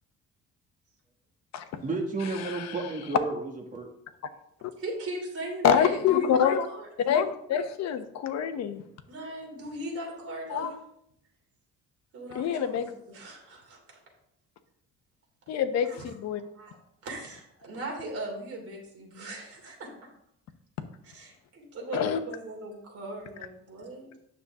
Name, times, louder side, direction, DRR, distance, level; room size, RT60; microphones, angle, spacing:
voice 1, 1.8-3.9, right 3 dB, 25° right, 1 dB, 1.7 m, -32 dB
voice 2, 2.3-2.9 4.6-4.7 5.6-6.6 7.1-8.8 10.5-10.7 12.3-12.9 15.5-16.4 21.9-22.2, left 8 dB, 60° left, 8 dB, 0.9 m, -26 dB
voice 3, 4.8-6.9 9.1-10.8 12.1-14.0 15.8-16.1 16.4-16.8 17.0-19.9 21.0-24.1, right 1 dB, 50° right, -1 dB, 3.2 m, -39 dB
9.5 x 6.9 x 3.7 m, 0.73 s
cardioid pair, 150°, 30 cm